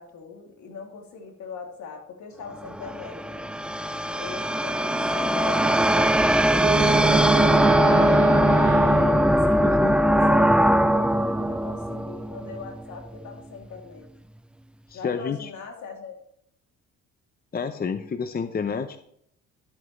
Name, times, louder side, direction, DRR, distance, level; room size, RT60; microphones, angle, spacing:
voice 1, 0.0-3.5 4.1-8.2 8.9-14.1 14.9-16.1, left 5 dB, 70° left, 1 dB, 2.8 m, -41 dB
sound 1, 2.6-12.9, right 1 dB, 5° right, 0.4 m, -21 dB
Wind instrument woodwind instrument, 6.5-9.4, right 5 dB, 50° right, 0.6 m, -27 dB
voice 2, 9.6-10.0 14.9-15.5 17.5-19.0, left 6 dB, 30° left, 9 dB, 0.7 m, -29 dB
12.5 x 8.0 x 3.2 m, 0.70 s
cardioid pair, 90°, 30 cm